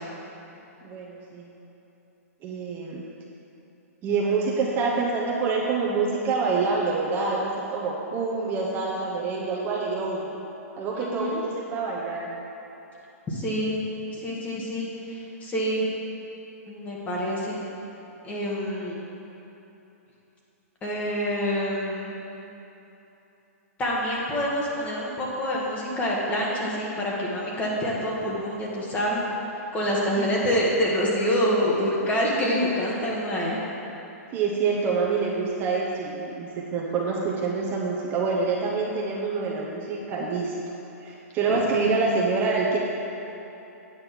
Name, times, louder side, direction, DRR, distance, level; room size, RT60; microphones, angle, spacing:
voice 1, 0.8-1.5 2.4-3.0 4.0-10.3 10.8-12.3 29.8-30.5 34.3-40.5 41.0-42.8, right 4 dB, 25° right, -3 dB, 1.0 m, -26 dB
voice 2, 11.0-11.4 13.3-13.8 14.2-15.9 16.7-17.6 18.2-19.0 20.8-22.2 23.8-29.2 29.7-33.6 41.5-42.0, equal, 15° left, -4 dB, 1.5 m, -27 dB
8.9 x 5.3 x 5.9 m, 3.0 s
hypercardioid pair, 145°, 8 cm